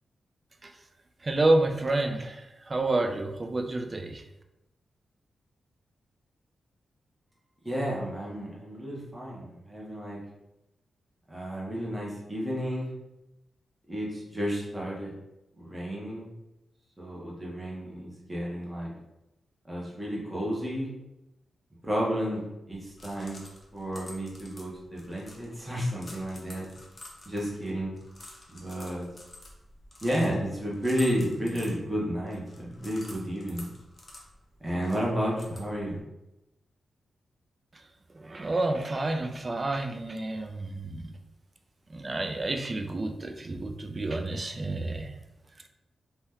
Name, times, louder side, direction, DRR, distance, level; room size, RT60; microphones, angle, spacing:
voice 1, 1.2-4.2 38.2-41.1 41.9-45.1, right 2 dB, 30° right, 5 dB, 0.3 m, -29 dB
voice 2, 7.6-10.2 11.3-12.9 13.9-15.1 15.6-16.3 17.0-18.9 19.6-20.9 21.8-22.4 22.7-23.4 23.7-26.7 27.3-27.9 28.5-29.1 30.0-33.7 34.6-36.0, equal, 10° right, -5 dB, 0.8 m, -32 dB
sound 1, 22.7-36.0, left 1 dB, 30° left, 0.6 m, -50 dB
2.8 x 2.2 x 3.4 m, 0.92 s
wide cardioid pair, 125°, 0 cm